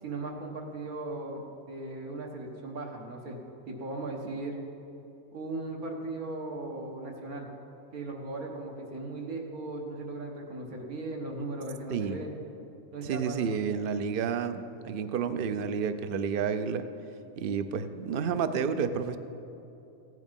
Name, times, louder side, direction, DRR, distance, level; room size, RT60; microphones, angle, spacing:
voice 1, 0.0-3.4 3.7-4.6 5.3-7.5 7.9-12.3 12.9-13.4, right 2 dB, 80° right, 0 dB, 1.9 m, -37 dB
voice 2, 13.0-16.9 17.4-19.2, right 6 dB, 60° right, 10 dB, 0.6 m, -30 dB
15.5 x 9.4 x 5.3 m, 2.8 s
omnidirectional pair, 1.5 m